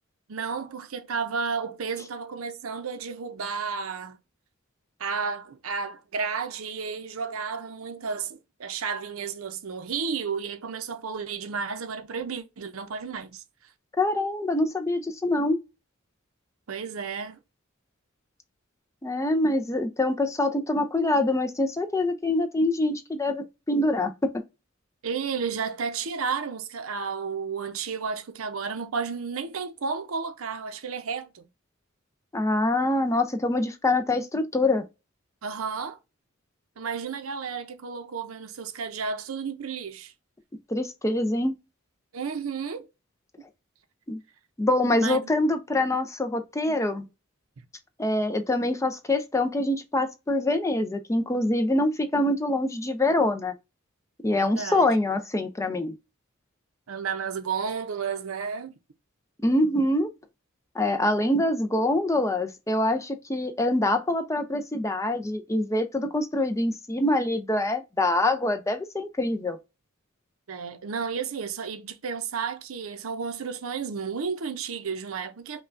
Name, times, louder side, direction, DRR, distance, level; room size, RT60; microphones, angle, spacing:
voice 1, 0.3-4.2 5.0-13.4 16.7-17.4 25.0-31.5 35.4-36.0 36.8-40.1 42.1-42.9 45.0-45.2 54.3-54.9 56.9-58.7 70.5-75.6, right 5 dB, 85° right, 0.6 m, -32 dB
voice 2, 14.0-15.6 19.0-24.1 32.3-34.9 40.7-41.5 44.1-44.2 44.6-47.1 48.0-53.5 54.2-56.0 59.4-60.1 60.8-69.6, left 1 dB, 15° left, 0.5 m, -25 dB
5.4 x 2.3 x 2.5 m
head